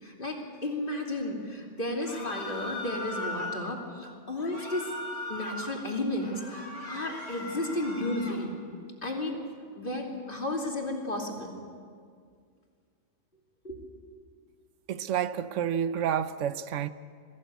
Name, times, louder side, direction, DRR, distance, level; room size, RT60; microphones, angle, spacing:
voice 1, 0.0-4.9 5.3-8.5 9.0-9.4 9.8-11.5 13.6-13.8, left 1 dB, 45° left, 2.9 m, -33 dB
sound 1, 2.0-3.7 4.4-5.7 6.1-8.4, left 1 dB, 80° left, 3.5 m, -38 dB
voice 2, 14.9-16.9, right 9 dB, 80° right, 1.0 m, -29 dB
22.0 x 15.0 x 8.3 m
omnidirectional pair, 1.2 m